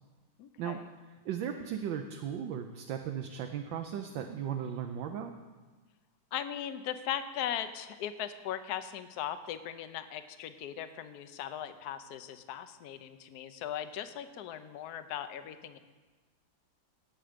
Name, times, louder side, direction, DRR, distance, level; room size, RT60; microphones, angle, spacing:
voice 1, 0.4-0.9 6.3-15.8, left 10 dB, 65° left, 11 dB, 1.1 m, -38 dB
voice 2, 1.2-5.3, right 8 dB, 75° right, 5 dB, 1.4 m, -36 dB
18.0 x 7.6 x 5.0 m, 1.3 s
omnidirectional pair, 2.1 m